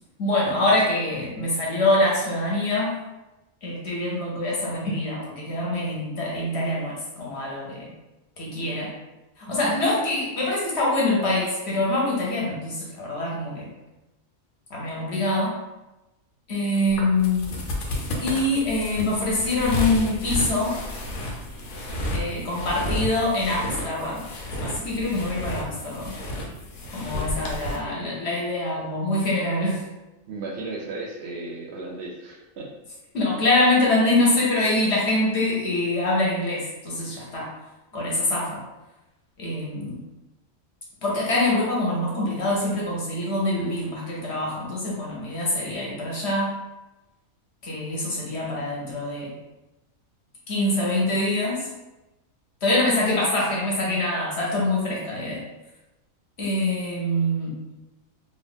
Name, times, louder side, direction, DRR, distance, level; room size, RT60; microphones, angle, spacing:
voice 1, 0.2-2.9 3.6-7.9 8.4-8.9 9.4-13.7 14.7-15.6 16.5-17.6 18.2-20.8 22.1-24.2 24.6-26.2 26.9-29.9 33.1-37.5 37.9-38.6 39.4-40.0 41.0-46.5 47.6-49.3 50.5-51.7 52.6-55.4 56.4-57.5, left 2 dB, 55° left, -5 dB, 1.0 m, -24 dB
sound 1, 16.9-27.8, left 1 dB, 90° left, 1.1 m, -32 dB
voice 2, 30.2-32.7 34.4-34.5, right 2 dB, 65° right, -1 dB, 0.7 m, -35 dB
2.9 x 2.4 x 3.4 m, 1.0 s
omnidirectional pair, 1.4 m